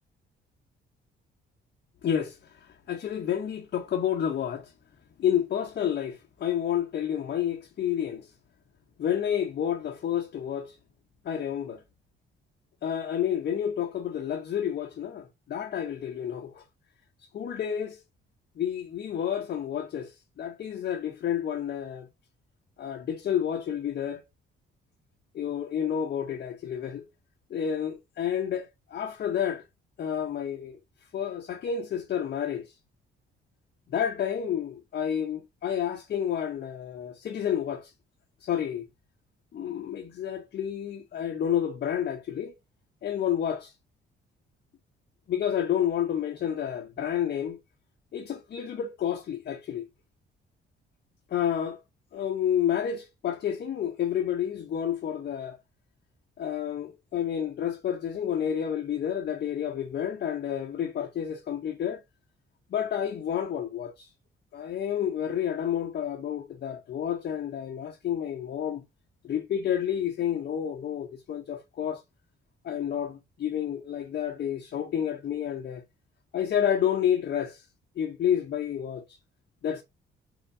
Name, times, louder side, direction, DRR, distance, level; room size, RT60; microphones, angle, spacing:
voice 1, 2.0-4.7 5.2-8.3 9.0-10.8 11.2-11.8 12.8-16.6 17.3-18.0 18.6-22.1 22.8-24.2 25.3-27.1 27.5-29.6 30.0-30.8 31.1-32.8 33.9-37.9 38.4-38.9 39.5-42.5 43.0-43.7 45.3-47.6 48.1-49.8 51.3-51.8 52.1-55.6 56.4-62.0 62.7-64.1 64.5-68.8 69.2-72.0 72.6-75.8 76.3-77.7 78.0-79.2 79.6-79.8, left 9 dB, 55° left, 0.7 m, -30 dB
4.4 x 4.4 x 2.6 m
cardioid pair, 90°, 20 cm